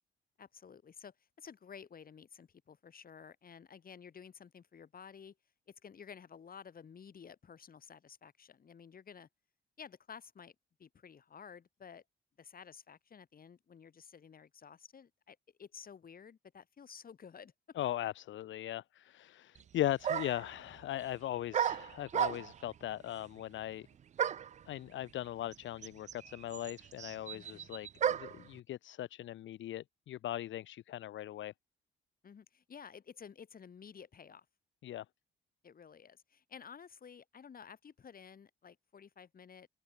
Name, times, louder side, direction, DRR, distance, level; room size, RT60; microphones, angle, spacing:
voice 1, 0.4-5.3 5.7-9.3 9.8-12.0 12.4-17.8 27.3-27.7 32.2-34.5 35.6-39.7, left 7 dB, 45° left, 5.4 m, -53 dB
voice 2, 17.7-23.9 24.7-31.5 34.8-35.0, left 13 dB, 75° left, 1.4 m, -39 dB
sound 1, 19.6-19.7 20.0-20.5 21.5-22.7 24.2-24.6 25.5-25.6 25.8-28.4, right 9 dB, 35° right, 0.4 m, -34 dB
open air
cardioid pair, 90°, 20 cm